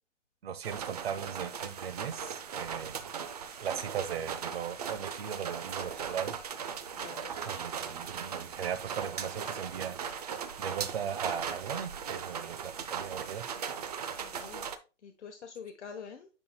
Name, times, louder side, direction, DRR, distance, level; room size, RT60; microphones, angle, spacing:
voice 1, 0.4-3.0 3.6-6.3 7.4-10.0 10.6-13.5, right 8 dB, 55° right, 1.0 m, -38 dB
sound 1, 0.6-14.8, right 7 dB, 35° right, 0.5 m, -38 dB
voice 2, 6.9-7.3 14.2-14.7 15.0-16.3, left 6 dB, 70° left, 1.1 m, -46 dB
9.0 x 5.5 x 2.2 m
hypercardioid pair, 160°, 36 cm